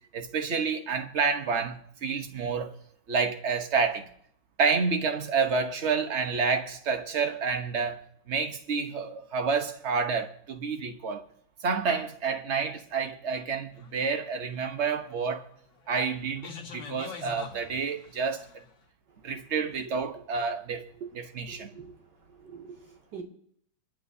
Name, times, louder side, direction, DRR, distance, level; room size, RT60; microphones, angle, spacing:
voice 1, 0.1-2.8 3.1-4.1 4.6-11.2 11.6-15.4 15.9-18.4 19.2-20.8 21.1-21.7, right 5 dB, 45° right, 1.2 m, -29 dB
sound 1, 13.7-18.7, left 6 dB, 80° left, 2.0 m, -44 dB
voice 2, 21.5-21.9 22.4-23.2, right 6 dB, 75° right, 3.0 m, -45 dB
28.0 x 12.0 x 2.7 m
omnidirectional pair, 1.9 m